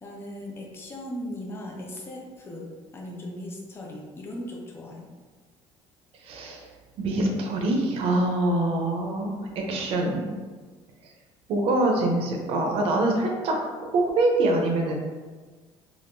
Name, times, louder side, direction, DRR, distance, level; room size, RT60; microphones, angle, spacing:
voice 1, 0.0-5.1, left 1 dB, 20° left, -1 dB, 0.5 m, -38 dB
voice 2, 6.2-6.7 7.0-9.4 9.7-10.2 11.5-13.6 13.8-14.9, right 2 dB, 55° right, 1 dB, 0.6 m, -24 dB
2.6 x 2.4 x 3.5 m, 1.4 s
cardioid pair, 150°, 11 cm